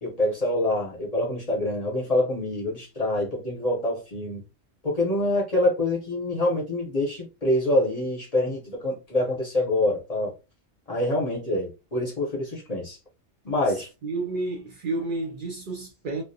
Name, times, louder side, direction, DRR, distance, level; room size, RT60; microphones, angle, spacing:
voice 1, 0.0-4.4 4.8-10.3 10.9-13.0 13.4-13.9, left 1 dB, 40° left, 0.7 m, -26 dB
voice 2, 14.0-16.2, right 2 dB, 55° right, 0.6 m, -30 dB
2.4 x 2.0 x 2.6 m
omnidirectional pair, 1.2 m